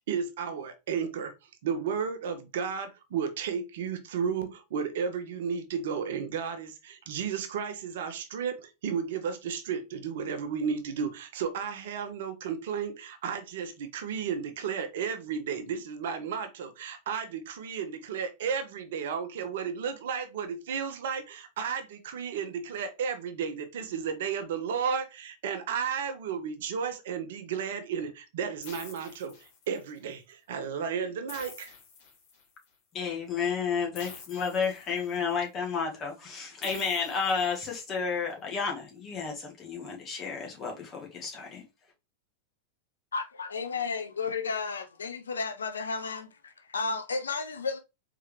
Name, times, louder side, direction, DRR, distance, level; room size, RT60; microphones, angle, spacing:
voice 1, 0.0-1.3 1.6-31.7, right 6 dB, 65° right, 0.9 m, -33 dB
sound 1, 28.6-30.0 31.3-32.6 33.9-35.3 36.6-38.0, left 5 dB, 55° left, 2.0 m, -48 dB
voice 2, 32.9-41.6, left 5 dB, 30° left, 1.9 m, -31 dB
voice 3, 43.1-47.8, left 4 dB, 80° left, 0.5 m, -33 dB
4.3 x 3.6 x 3.2 m
figure-of-eight pair, 95°, 0 cm